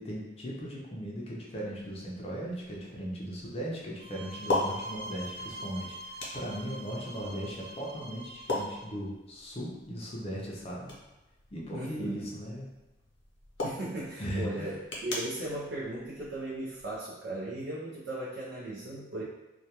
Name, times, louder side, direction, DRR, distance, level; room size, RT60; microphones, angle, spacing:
voice 1, 0.0-10.9 11.5-12.7 14.2-14.7, equal, 35° left, -4 dB, 0.4 m, -38 dB
sound 1, 1.8-17.0, left 2 dB, 90° left, 0.7 m, -40 dB
sound 2, 4.0-8.9, right 1 dB, 30° right, 0.3 m, -44 dB
voice 2, 11.7-12.3 13.6-19.2, right 1 dB, 85° right, -7 dB, 0.5 m, -37 dB
2.2 x 2.2 x 2.8 m, 1.1 s
head